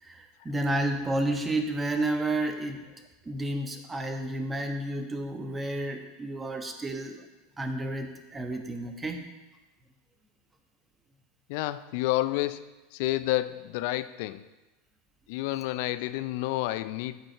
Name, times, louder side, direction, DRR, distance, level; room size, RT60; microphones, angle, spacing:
voice 1, 0.0-2.8 3.2-7.2 7.6-9.3, right 1 dB, 15° right, 5 dB, 1.3 m, -31 dB
voice 2, 11.5-14.4 15.3-17.2, left 17 dB, 55° left, 14 dB, 0.4 m, -30 dB
14.0 x 5.2 x 4.5 m, 1.1 s
figure-of-eight pair, 80°, 0 cm